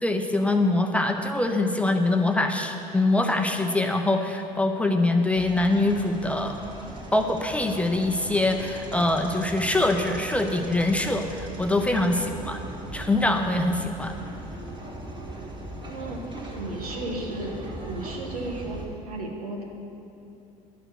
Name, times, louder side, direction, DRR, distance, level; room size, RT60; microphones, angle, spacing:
voice 1, 0.0-6.6 7.1-12.6 12.9-14.2, left 2 dB, 5° left, 4 dB, 0.8 m, -24 dB
sound 1, 5.3-18.9, right 1 dB, 25° right, 2.2 m, -39 dB
voice 2, 15.9-18.8 19.1-19.6, right 2 dB, 80° right, 0 dB, 1.4 m, -34 dB
11.0 x 6.7 x 6.1 m, 2.8 s
figure-of-eight pair, 65°, 19 cm